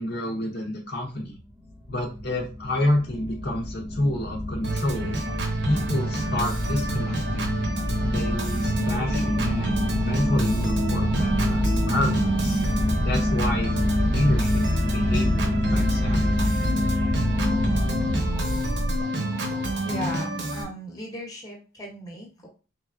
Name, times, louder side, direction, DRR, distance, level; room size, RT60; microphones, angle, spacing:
voice 1, 0.0-1.4 1.9-5.2 5.6-7.6 8.0-12.6 13.0-13.7 14.1-16.6, left 1 dB, 50° left, 1 dB, 0.7 m, -29 dB
sound 1, 1.5-19.0, left 1 dB, 10° right, 0.4 m, -26 dB
Organ, 4.6-20.6, right 2 dB, 55° right, 0.9 m, -29 dB
voice 2, 19.3-22.5, equal, 15° left, 1 dB, 0.9 m, -37 dB
4.3 x 3.2 x 2.5 m, 0.32 s
head